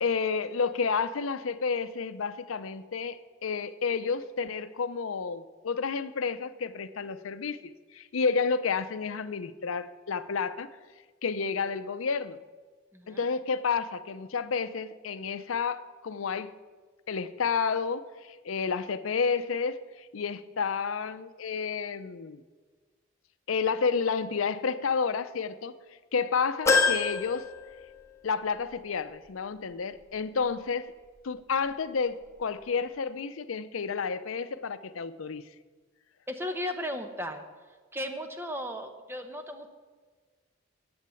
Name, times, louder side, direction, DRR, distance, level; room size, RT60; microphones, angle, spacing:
voice 1, 0.0-10.7 11.2-12.4 13.1-16.5 17.1-22.4 23.5-25.8 26.1-27.5 28.2-30.9 31.2-35.5, left 5 dB, 90° left, 13 dB, 0.6 m, -30 dB
voice 2, 12.9-13.3 36.3-37.4 37.9-39.7, equal, 10° right, 6 dB, 0.9 m, -35 dB
sound 1, 26.7-28.3 28.7-28.8 30.0-30.1, left 4 dB, 15° left, 1.5 m, -27 dB
10.5 x 8.7 x 7.0 m, 1.4 s
head